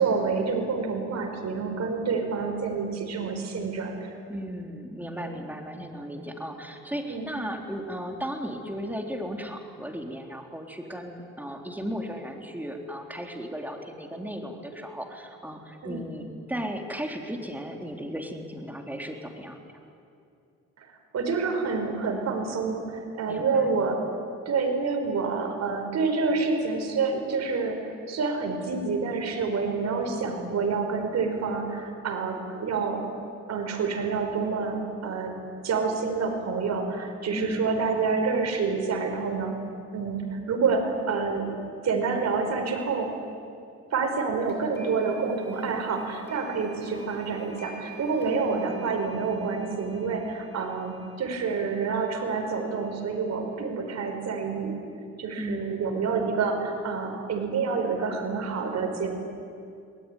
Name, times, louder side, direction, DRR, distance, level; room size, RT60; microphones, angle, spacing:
voice 1, 0.0-3.9 5.2-5.4 7.1-7.3 15.8-16.0 21.1-24.0 24.4-27.8 28.1-33.0 33.5-35.3 35.6-39.5 39.9-41.5 41.8-43.1 43.9-54.8 55.2-59.1, right 4 dB, 60° right, 4 dB, 5.0 m, -28 dB
voice 2, 4.3-19.6 23.3-23.7 37.3-37.6 37.9-38.1 55.4-55.6 56.1-56.2, equal, 5° right, 2 dB, 3.6 m, -35 dB
sound 1, 44.5-53.4, right 2 dB, 35° left, 6.5 m, -49 dB
23.0 x 19.0 x 10.0 m, 2.5 s
cardioid pair, 90°, 30 cm